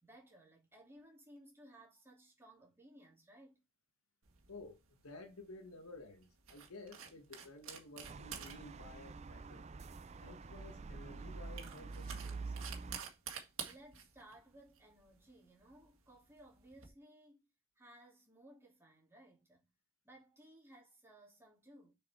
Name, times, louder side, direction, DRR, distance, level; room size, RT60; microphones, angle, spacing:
voice 1, 0.0-3.6 13.6-17.5 17.8-19.7 20.0-21.9, right 1 dB, 10° right, 2.7 m, -60 dB
sound 1, 4.2-16.9, right 8 dB, 65° right, 1.8 m, -51 dB
voice 2, 4.5-9.7 10.2-12.5, left 2 dB, 75° left, 1.3 m, -54 dB
sound 2, 8.0-13.0, right 4 dB, 30° right, 0.4 m, -46 dB
6.8 x 5.0 x 4.3 m
head